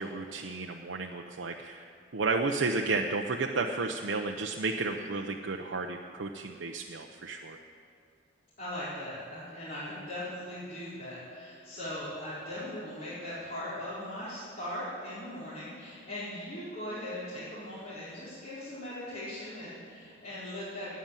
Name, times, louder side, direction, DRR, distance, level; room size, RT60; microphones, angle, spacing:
voice 1, 0.0-7.6, right 3 dB, 80° right, 2 dB, 0.7 m, -32 dB
voice 2, 8.6-21.0, left 1 dB, 45° left, -13 dB, 4.6 m, -39 dB
13.0 x 9.6 x 9.1 m, 2.3 s
head